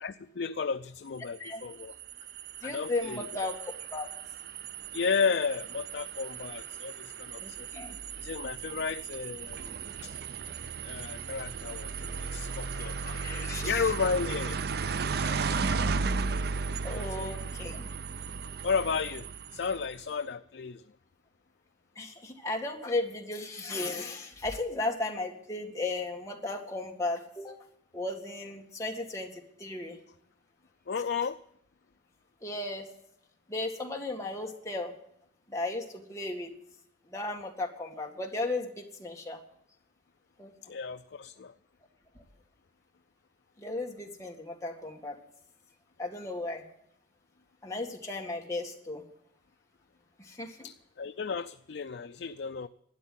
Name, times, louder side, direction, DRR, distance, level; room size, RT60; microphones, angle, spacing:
voice 1, 0.0-1.9 2.6-3.3 4.9-7.7 8.2-9.7 10.0-10.1 10.8-13.2 13.6-14.6 15.2-15.6 16.9-17.3 18.6-20.8 30.9-31.4 40.6-41.5 50.6-52.7, left 5 dB, 65° left, 9 dB, 0.4 m, -33 dB
sound 1, 1.4-19.9, right 5 dB, 55° right, 0.5 m, -35 dB
voice 2, 2.6-3.6 3.9-4.1 7.4-8.0 12.8-13.8 16.8-17.9 22.0-27.6 27.9-30.0 32.4-32.9 33.5-34.9 35.5-36.5 37.1-39.4 40.4-40.5 43.6-45.2 46.0-46.6 47.6-49.0 50.2-50.7, left 2 dB, 15° left, 0 dB, 1.9 m, -35 dB
12.5 x 9.4 x 9.1 m, 0.73 s
head